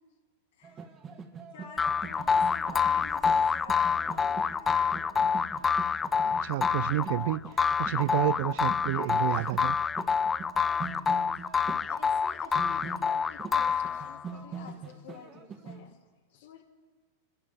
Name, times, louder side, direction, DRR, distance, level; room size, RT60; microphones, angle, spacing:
voice 1, 0.5-0.9 1.5-5.3 9.3-9.5 11.3-16.0 16.3-16.6, left 7 dB, 75° left, 2.3 m, -49 dB
sound 1, 0.6-15.9, right 5 dB, 30° right, 1.4 m, -44 dB
sound 2, 1.8-14.3, left 6 dB, 20° left, 0.3 m, -27 dB
voice 2, 6.2-7.4 7.8-9.8, right 16 dB, 60° right, 0.4 m, -30 dB
23.5 x 11.0 x 3.5 m
hypercardioid pair, 105°, 0 cm